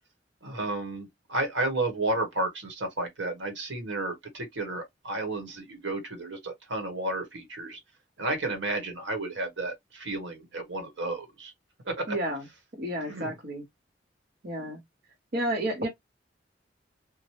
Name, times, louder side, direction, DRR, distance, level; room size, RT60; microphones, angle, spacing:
voice 1, 0.4-7.8 8.2-11.5 11.8-12.1 13.0-13.4, right 2 dB, 85° right, 1.2 m, -32 dB
voice 2, 12.1-12.4 12.8-13.6 14.4-14.8 15.3-15.9, right 1 dB, 55° right, 0.8 m, -31 dB
3.0 x 2.1 x 2.9 m
head